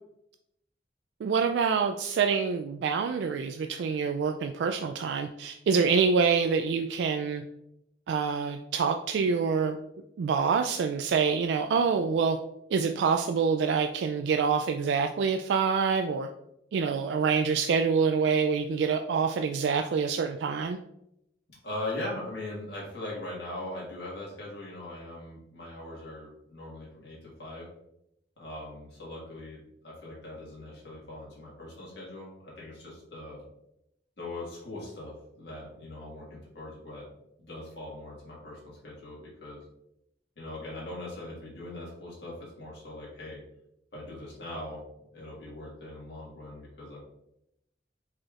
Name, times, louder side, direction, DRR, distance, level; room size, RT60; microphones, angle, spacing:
voice 1, 1.2-7.4 8.1-9.8 10.2-12.4 12.7-16.3 16.7-20.8, right 5 dB, 90° right, 5 dB, 0.3 m, -26 dB
voice 2, 21.5-27.7 28.4-33.4 34.2-37.0 37.4-39.6 40.4-43.4 43.9-44.8 45.1-47.0, left 1 dB, 75° left, -5 dB, 1.7 m, -40 dB
4.8 x 4.3 x 2.4 m, 0.81 s
head